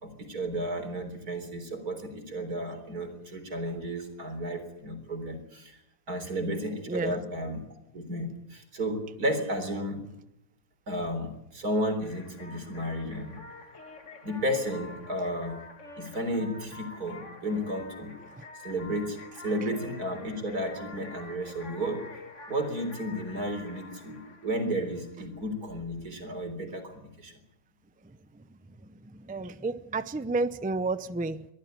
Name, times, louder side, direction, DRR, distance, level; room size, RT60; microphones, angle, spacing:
voice 1, 0.0-5.8 6.1-7.6 7.9-10.0 10.9-13.4 14.2-15.6 16.0-18.1 18.6-22.0 22.5-27.4, equal, 90° right, 7 dB, 4.3 m, -33 dB
voice 2, 6.9-7.2 18.4-18.5 29.0-31.5, right 3 dB, 10° right, 13 dB, 0.3 m, -31 dB
sound 1, 12.0-25.5, left 3 dB, 55° left, 2.4 m, -48 dB
23.0 x 14.0 x 9.1 m, 0.88 s
omnidirectional pair, 1.6 m